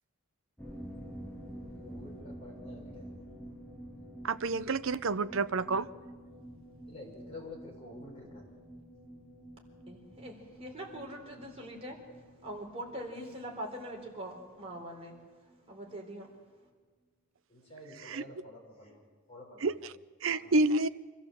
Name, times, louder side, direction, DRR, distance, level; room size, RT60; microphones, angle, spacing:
sound 1, 0.6-16.0 16.2-16.3 16.6-16.7, right 1 dB, 5° left, 3.9 m, -49 dB
voice 1, 1.8-3.2 6.9-8.4 17.5-19.0 19.3-19.9 20.2-20.6, left 1 dB, 30° left, -2 dB, 6.2 m, -49 dB
voice 2, 4.2-5.9 18.1-18.2 19.6-19.7 20.2-20.9, right 3 dB, 65° right, 14 dB, 0.6 m, -28 dB
voice 3, 9.9-12.0 12.4-15.1 15.7-16.3, right 1 dB, 30° right, 0 dB, 4.0 m, -42 dB
25.5 x 14.5 x 7.6 m, 1.4 s
head